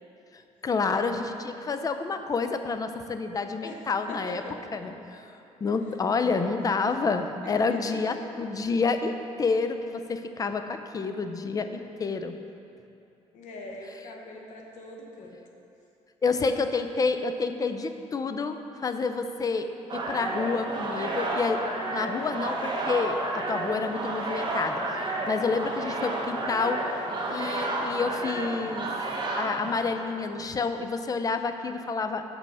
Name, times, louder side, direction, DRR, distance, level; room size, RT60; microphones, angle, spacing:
voice 1, 0.6-4.4 4.7-5.2 5.6-12.4 16.2-19.7 19.9-21.6 21.9-26.8 27.3-28.9 29.4-32.2, left 4 dB, 30° left, 8 dB, 0.4 m, -29 dB
voice 2, 4.1-4.9 6.2-6.7 7.4-7.6 13.3-15.4, left 2 dB, 85° left, 0 dB, 1.0 m, -43 dB
sound 1, 19.9-30.4, right 2 dB, 40° right, 1.1 m, -31 dB
6.1 x 5.2 x 5.5 m, 2.7 s
cardioid pair, 100°, 12 cm